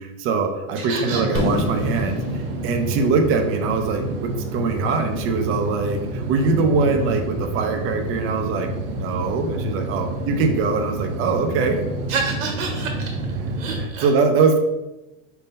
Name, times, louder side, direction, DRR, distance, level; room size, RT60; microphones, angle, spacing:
voice 1, 0.0-8.7 8.9-11.8 13.8-14.6, right 4 dB, 30° right, 5 dB, 0.6 m, -22 dB
voice 2, 0.8-1.4 12.1-13.1 13.6-14.1, right 4 dB, 75° right, 3 dB, 1.4 m, -28 dB
sound 1, 1.1-13.9, right 2 dB, 60° right, 0.8 m, -28 dB
Fireworks, 1.4-5.2, left 2 dB, 35° left, 1.5 m, -30 dB
5.1 x 2.8 x 3.7 m, 1.0 s
supercardioid pair, 130°, 40 cm